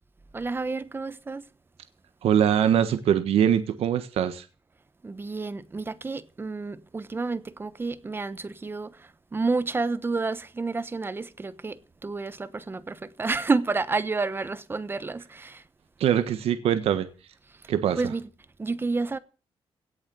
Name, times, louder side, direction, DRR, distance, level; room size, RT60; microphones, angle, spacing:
voice 1, 0.3-1.4 5.0-15.6 18.0-18.3 18.6-19.2, right 3 dB, 20° right, 1.0 m, -30 dB
voice 2, 2.2-4.4 16.0-17.1 17.7-18.0, right 9 dB, 90° right, 1.4 m, -23 dB
17.5 x 6.5 x 9.1 m
cardioid pair, 135°, 10 cm